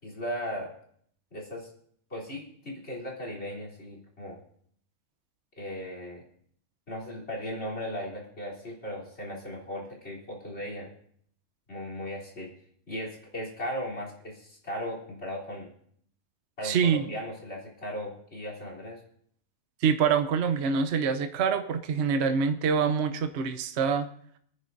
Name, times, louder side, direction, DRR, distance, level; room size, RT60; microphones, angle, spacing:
voice 1, 0.0-0.7 1.3-1.7 2.1-4.4 5.6-6.2 6.9-10.9 11.7-12.5 12.9-15.7 16.6-19.0, equal, 45° left, -2 dB, 3.9 m, -37 dB
voice 2, 16.6-17.0 19.8-24.1, right 6 dB, 55° right, 8 dB, 1.0 m, -25 dB
28.0 x 9.6 x 2.7 m, 0.64 s
omnidirectional pair, 1.5 m